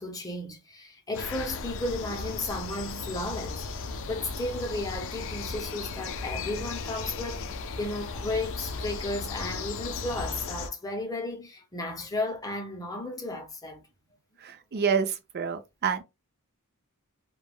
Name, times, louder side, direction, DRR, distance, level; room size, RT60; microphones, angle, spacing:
voice 1, 0.0-13.8, left 2 dB, 15° left, 0.6 m, -34 dB
sound 1, 1.1-10.7, left 4 dB, 60° left, 0.4 m, -36 dB
voice 2, 14.4-16.0, right 6 dB, 45° right, 0.5 m, -28 dB
3.2 x 2.2 x 2.2 m
head